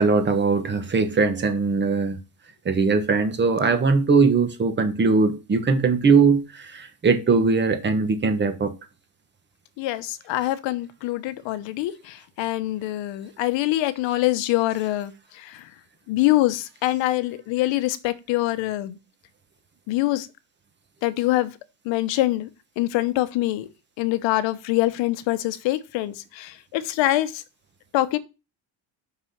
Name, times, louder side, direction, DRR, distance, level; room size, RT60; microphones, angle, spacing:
voice 1, 0.0-2.2 2.6-8.7, right 4 dB, 25° right, 1.3 m, -20 dB
voice 2, 9.8-15.7 16.1-19.0 19.9-20.3 21.0-21.5 21.8-22.5 22.8-23.7 24.0-27.4 27.9-28.2, left 16 dB, 85° left, 1.0 m, -24 dB
6.0 x 6.0 x 5.8 m
cardioid pair, 160°, 43 cm